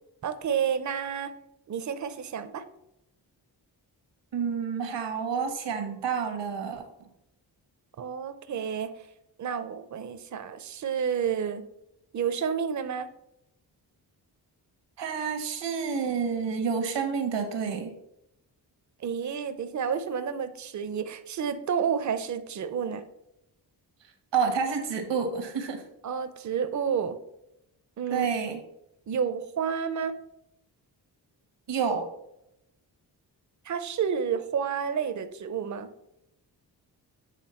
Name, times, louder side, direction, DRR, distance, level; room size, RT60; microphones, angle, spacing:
voice 1, 0.2-1.3 1.7-2.6 8.0-8.9 9.4-11.6 12.1-13.1 19.0-23.0 26.0-27.2 28.0-28.3 29.1-30.1 33.6-35.9, right 7 dB, 45° right, 10 dB, 0.6 m, -30 dB
voice 2, 4.3-7.1 15.0-17.9 24.3-25.8 28.1-28.6 31.7-32.1, right 6 dB, 85° right, 6 dB, 1.2 m, -29 dB
8.3 x 3.4 x 4.3 m, 0.82 s
cardioid pair, 75°, 42 cm